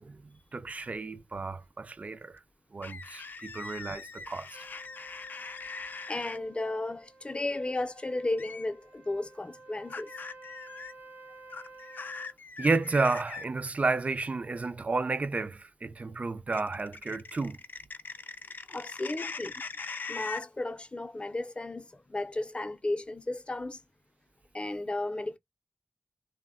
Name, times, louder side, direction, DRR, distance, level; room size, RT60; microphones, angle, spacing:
voice 1, 0.5-2.4 2.7-4.5 12.6-17.6, right 3 dB, 45° right, 0.4 m, -31 dB
sound 1, 2.8-6.4 8.4-8.7 9.9-10.9 11.5-13.4 16.5-20.4, left 4 dB, 80° left, 0.4 m, -41 dB
Trumpet, 4.5-12.4, right 2 dB, 85° right, 0.8 m, -53 dB
voice 2, 6.1-10.1 18.7-19.6 20.1-23.8 24.5-25.4, left 2 dB, 35° left, 0.5 m, -34 dB
3.3 x 2.1 x 2.3 m
wide cardioid pair, 70°, 3 cm